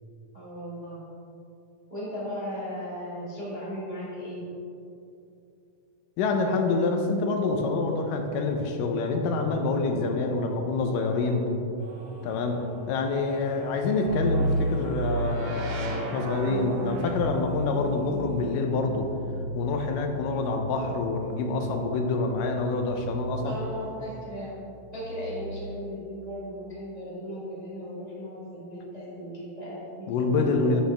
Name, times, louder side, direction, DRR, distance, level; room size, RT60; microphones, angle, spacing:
voice 1, 0.3-1.0 1.9-4.4 23.4-24.6 24.9-30.8, equal, 20° right, -9 dB, 1.0 m, -37 dB
voice 2, 6.2-11.4 12.2-12.6 12.9-19.1 19.5-23.6 30.1-30.8, left 3 dB, 85° left, 4 dB, 2.4 m, -26 dB
sound 1, 11.8-18.6, right 1 dB, 50° right, 2.2 m, -46 dB
sound 2, 14.1-23.9 24.9-25.9, right 2 dB, 85° right, 1.3 m, -33 dB
8.1 x 7.9 x 3.4 m, 2.7 s
omnidirectional pair, 3.7 m